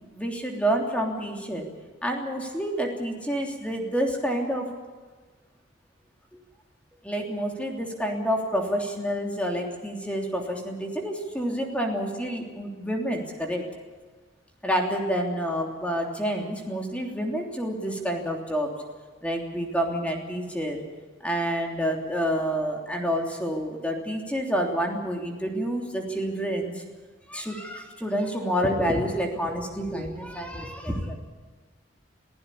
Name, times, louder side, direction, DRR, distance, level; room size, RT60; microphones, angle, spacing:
voice 1, 0.1-1.7 2.0-4.7 7.0-13.7 14.6-18.7 19.2-20.8 21.2-26.8 27.3-31.2, equal, 5° left, 2 dB, 3.2 m, -28 dB
23.5 x 15.5 x 8.5 m, 1.4 s
head